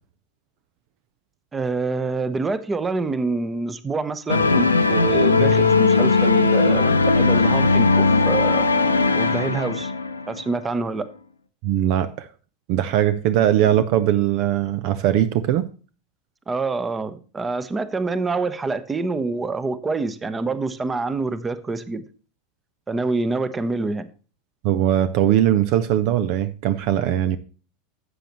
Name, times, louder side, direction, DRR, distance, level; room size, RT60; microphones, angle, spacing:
voice 1, 1.5-8.7 9.2-9.9 10.3-11.1 16.5-22.0 22.9-24.1, right 3 dB, 20° right, 1.0 m, -26 dB
sound 1, 4.3-10.5, left 3 dB, 90° left, 0.8 m, -18 dB
voice 2, 11.6-12.3 12.7-15.7 24.6-27.4, right 11 dB, 55° right, 0.6 m, -20 dB
13.0 x 7.9 x 3.0 m
figure-of-eight pair, 85°, 0 cm